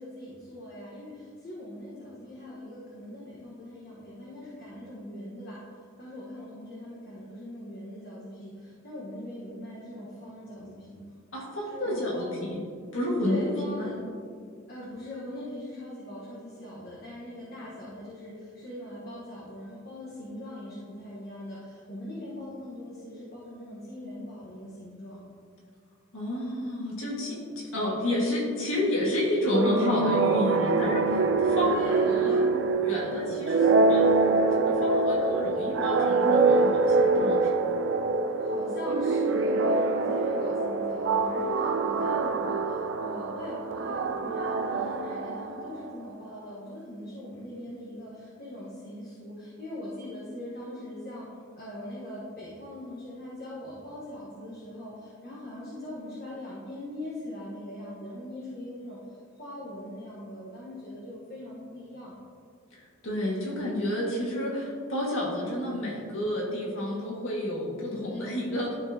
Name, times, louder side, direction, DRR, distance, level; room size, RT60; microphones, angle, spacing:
voice 1, 0.0-5.6 6.0-11.0 11.6-12.4 13.2-14.0 14.7-25.2 31.7-32.5 33.5-34.3 38.4-62.1 68.0-68.6, left 1 dB, 50° left, -7 dB, 1.3 m, -41 dB
voice 2, 11.3-12.6 12.9-13.9 26.1-32.5 32.8-34.1 34.7-37.6 62.8-68.7, left 1 dB, 80° left, -4 dB, 1.9 m, -30 dB
sound 1, 29.5-45.9, right 3 dB, 65° right, 0.5 m, -25 dB
12.5 x 4.5 x 2.9 m, 2.2 s
head